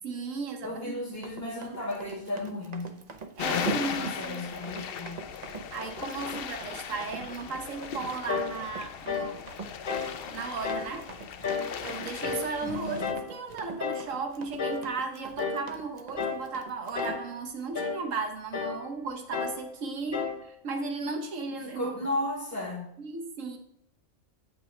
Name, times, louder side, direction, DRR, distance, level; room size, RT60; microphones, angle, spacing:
voice 1, 0.0-1.0 3.4-4.4 5.6-9.4 10.3-11.1 11.5-21.9 23.0-23.6, right 4 dB, 80° right, 5 dB, 1.3 m, -36 dB
voice 2, 0.6-3.0 3.9-5.3 12.6-13.1 21.6-22.8, left 1 dB, 10° left, -6 dB, 3.8 m, -34 dB
Run, 1.1-17.2, right 4 dB, 40° right, 0.7 m, -43 dB
sound 1, 3.4-13.1, left 8 dB, 60° left, 0.7 m, -38 dB
sound 2, 8.3-8.6 9.1-9.4 9.9-10.2 10.6-10.9 11.4-11.8 12.2-12.5 13.0-13.3 13.8-14.1 14.6-14.9 15.4-15.7 16.2-16.5 17.0-17.3 17.8-18.0 18.5-18.8 19.3-19.6 20.1-20.4, left 5 dB, 40° left, 1.1 m, -32 dB
8.7 x 8.3 x 3.2 m, 0.74 s
omnidirectional pair, 1.3 m